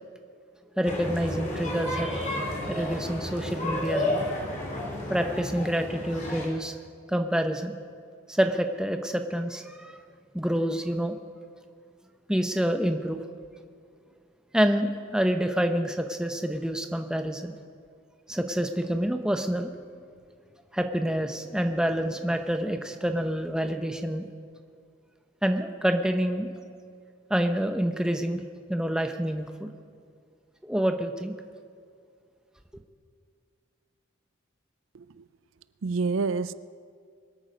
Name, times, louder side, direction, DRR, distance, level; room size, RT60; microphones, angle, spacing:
sound 1, 0.8-6.5, left 1 dB, 35° left, 3.0 m, -32 dB
voice 1, 0.8-2.4 2.7-4.2 5.1-6.7 7.1-7.7 8.3-10.0 10.3-11.2 12.3-13.2 14.5-17.5 18.3-19.7 20.7-24.2 25.4-26.5 27.3-28.4 28.7-29.7 30.6-31.3, equal, 5° right, 0.7 m, -27 dB
voice 2, 34.9-35.3 35.8-36.5, right 4 dB, 80° right, 0.5 m, -28 dB
24.0 x 8.7 x 5.2 m
head